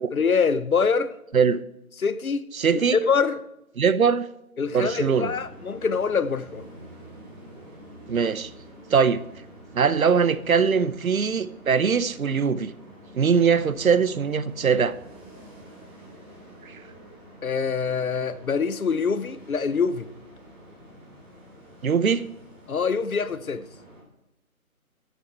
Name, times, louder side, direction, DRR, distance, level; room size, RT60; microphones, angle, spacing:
voice 1, 0.1-1.2 2.0-2.5 2.9-3.4 4.6-6.7 17.4-20.1 22.7-23.7, left 5 dB, 70° left, 0.9 m, -24 dB
voice 2, 2.5-3.0 3.8-4.2 4.7-5.3 8.1-8.5 8.9-9.2 9.7-12.7 13.1-14.9 16.7-16.8 21.8-22.2, right 6 dB, 70° right, 0.8 m, -21 dB
sound 1, 4.6-24.0, right 1 dB, 15° right, 3.6 m, -47 dB
13.5 x 6.9 x 4.5 m
figure-of-eight pair, 155°, 43 cm